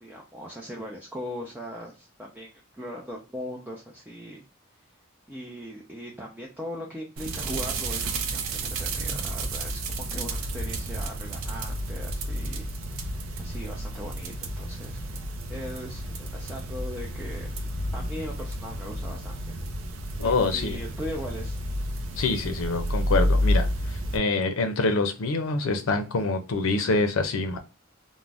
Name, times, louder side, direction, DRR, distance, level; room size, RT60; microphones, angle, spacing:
voice 1, 0.0-4.4 5.3-9.8 10.1-12.7 13.1-15.1 15.5-17.7 17.9-19.7 20.2-21.6, equal, 10° right, -2 dB, 0.4 m, -39 dB
sound 1, 7.2-24.2, right 1 dB, 80° right, 0.5 m, -30 dB
voice 2, 20.2-20.8 22.2-27.6, left 3 dB, 80° left, 7 dB, 0.5 m, -26 dB
2.5 x 2.1 x 3.2 m, 0.31 s
head